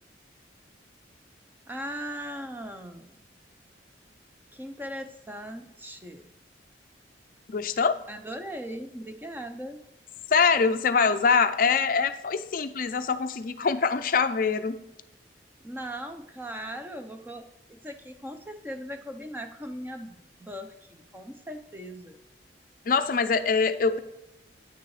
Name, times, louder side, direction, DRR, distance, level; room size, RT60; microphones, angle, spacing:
voice 1, 1.7-3.1 4.5-6.3 8.1-9.8 15.6-22.2, equal, 10° right, 6 dB, 0.6 m, -39 dB
voice 2, 7.5-8.0 10.3-14.8 22.9-24.0, left 5 dB, 50° left, 10 dB, 0.4 m, -24 dB
9.4 x 6.7 x 3.2 m, 0.96 s
head